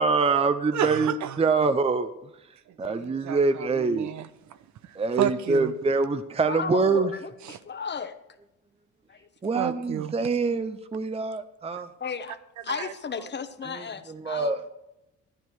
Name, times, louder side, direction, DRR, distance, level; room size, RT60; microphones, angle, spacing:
voice 1, 0.0-2.1 2.8-4.1 5.0-7.1 9.4-11.9 13.7-14.6, right 4 dB, 20° right, 0.6 m, -25 dB
voice 2, 0.7-1.4 2.8-4.6 4.8-5.7 7.5-7.6 9.5-10.1 12.7-12.9, right 9 dB, 70° right, 0.9 m, -32 dB
voice 3, 6.4-8.2 9.1-9.3 12.0-12.4 12.6-14.7, left 6 dB, 35° left, 1.0 m, -34 dB
12.0 x 9.9 x 4.6 m
cardioid pair, 90°, 30 cm